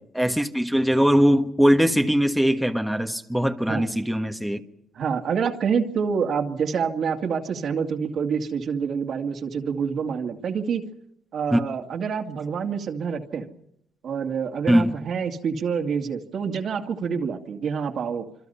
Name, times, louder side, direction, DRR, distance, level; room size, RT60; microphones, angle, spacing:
voice 1, 0.1-4.6 11.5-11.6 14.7-14.9, equal, ahead, 1.5 m, -21 dB
voice 2, 4.9-10.9 11.3-13.5 14.0-18.3, right 6 dB, 60° right, 2.3 m, -27 dB
26.5 x 25.5 x 5.7 m
cardioid pair, 90°, 0 cm